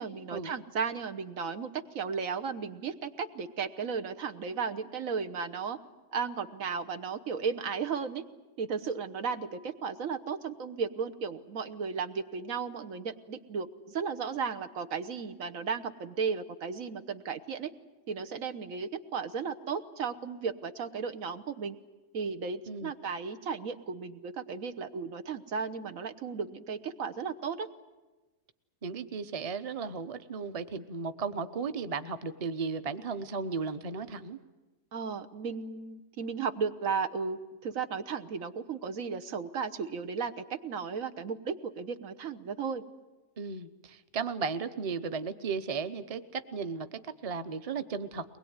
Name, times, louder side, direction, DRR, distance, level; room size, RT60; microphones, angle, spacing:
voice 1, 0.0-1.7 1.9-5.8 6.1-8.2 8.6-17.7 18.1-21.8 22.1-27.7 34.9-40.3 40.6-42.8, right 5 dB, 85° right, 10 dB, 1.5 m, -35 dB
voice 2, 28.8-34.4 43.4-48.2, right 5 dB, 30° right, 10 dB, 0.9 m, -35 dB
22.5 x 20.5 x 9.6 m, 1.1 s
omnidirectional pair, 1.4 m